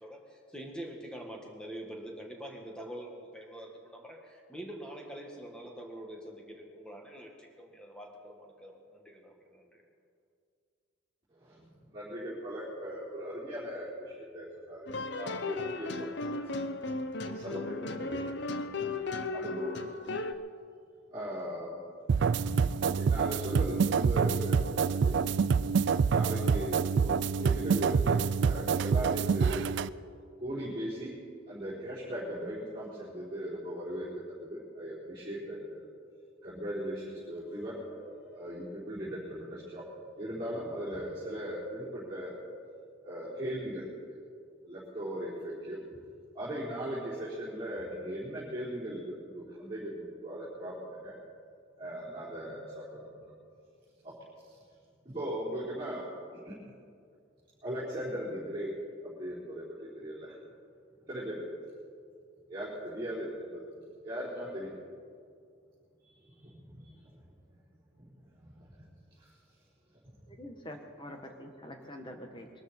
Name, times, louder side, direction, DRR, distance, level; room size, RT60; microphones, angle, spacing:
voice 1, 0.0-9.8, right 1 dB, 5° left, 0 dB, 1.7 m, -45 dB
voice 2, 11.3-14.9 15.2-16.4 17.2-18.2 19.0-19.8 21.1-21.8 22.3-25.4 26.1-28.2 28.4-29.6 30.4-31.1 31.5-35.9 36.4-39.8 40.2-42.4 43.0-44.0 44.6-45.8 46.3-51.1 51.8-53.1 54.0-54.1 54.5-54.6 55.0-56.0 56.4-56.5 57.6-58.7 59.0-60.3 61.1-61.4 62.5-64.7 66.1-67.1 68.0-68.1 68.4-68.8 69.2-69.3 69.9-70.2, equal, 20° right, -13 dB, 4.0 m, -39 dB
sound 1, 14.9-20.3, left 3 dB, 55° left, 0.7 m, -35 dB
sound 2, 22.1-29.9, right 5 dB, 60° right, 0.3 m, -27 dB
voice 3, 70.3-72.5, left 1 dB, 25° left, 4 dB, 1.4 m, -45 dB
22.5 x 12.5 x 4.4 m, 2.3 s
head